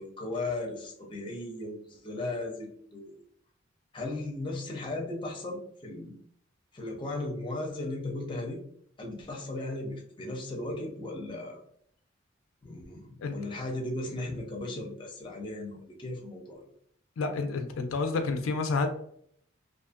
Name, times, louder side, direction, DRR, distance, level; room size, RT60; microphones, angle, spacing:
voice 1, 0.0-3.1 3.9-6.2 6.7-8.6 9.0-11.6 12.6-16.6, left 2 dB, 25° left, 1 dB, 0.5 m, -36 dB
voice 2, 17.2-18.9, left 3 dB, 80° left, 6 dB, 0.4 m, -29 dB
2.4 x 2.4 x 2.5 m, 0.65 s
head